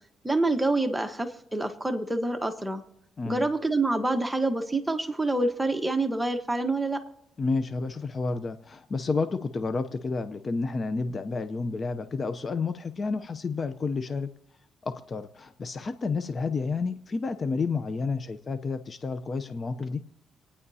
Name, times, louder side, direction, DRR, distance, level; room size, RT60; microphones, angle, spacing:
voice 1, 0.2-2.8 3.3-7.0, right 2 dB, 10° right, 5 dB, 1.2 m, -27 dB
voice 2, 7.4-14.3 14.8-20.0, left 4 dB, 40° left, 9 dB, 0.6 m, -30 dB
27.5 x 9.9 x 2.8 m, 0.84 s
cardioid pair, 90°, 0 cm